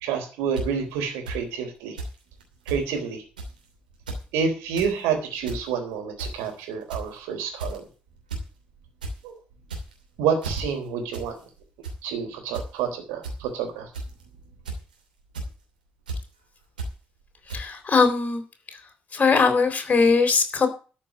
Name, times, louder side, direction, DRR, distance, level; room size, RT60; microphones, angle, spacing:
voice 1, 0.0-2.0 2.7-3.2 4.3-7.8 9.2-9.4 10.2-11.4 12.0-13.9, right 6 dB, 70° right, 4 dB, 3.8 m, -28 dB
sound 1, 0.6-0.7 1.3-1.4 2.0-2.1 2.4-2.8 3.4-3.6 3.9-4.2 4.6-4.9 5.3-5.6 6.2-6.5 6.9-7.2 7.6-7.9 8.3-8.4 8.8-9.1 9.6-10.0 10.4-10.6 11.1-11.3 11.6-12.0 12.5-12.7 13.2-13.3 13.9-14.2 14.6-14.9 15.3-15.5 16.1-16.2 16.8-16.9 17.5-17.6, right 2 dB, 90° right, 2.8 m, -33 dB
voice 2, 17.5-18.4 19.1-20.7, left 4 dB, 35° left, 6 dB, 3.7 m, -20 dB
13.0 x 5.9 x 9.0 m, 0.36 s
figure-of-eight pair, 45°, 5 cm